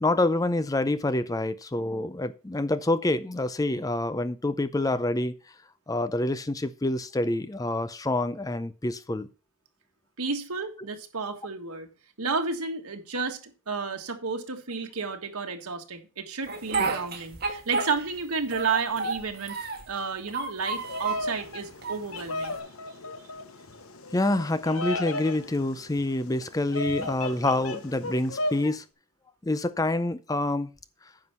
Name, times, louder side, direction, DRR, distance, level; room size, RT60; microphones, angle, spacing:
voice 1, 0.0-5.3 5.9-9.3 24.1-28.8 29.4-30.7, left 2 dB, 15° left, 0.5 m, -27 dB
voice 2, 10.2-11.9 12.2-13.4 13.7-19.6 19.9-22.6, right 4 dB, 90° right, 1.7 m, -31 dB
Speech, 16.5-18.2 18.5-19.9 20.3-21.3 21.8-22.6, right 4 dB, 45° right, 2.2 m, -31 dB
Bird vocalization bird call bird song, 20.7-28.7, left 2 dB, 70° left, 1.0 m, -35 dB
9.6 x 5.8 x 5.6 m
head